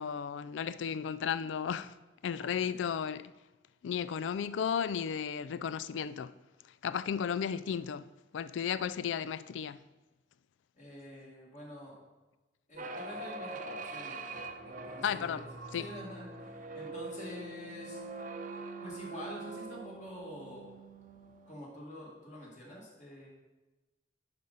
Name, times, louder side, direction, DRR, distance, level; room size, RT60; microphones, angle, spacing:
voice 1, 0.0-2.0 2.2-3.3 3.8-6.3 6.8-8.1 8.3-9.8 15.0-15.5 15.7-15.8, left 7 dB, 80° left, 0.3 m, -34 dB
voice 2, 2.4-2.9 10.7-12.0 12.7-15.4 15.8-18.0 18.8-20.7 21.5-23.3, equal, 40° left, 2.1 m, -47 dB
sound 1, 12.8-21.5, right 2 dB, 45° right, 0.7 m, -43 dB
11.0 x 5.1 x 4.1 m
head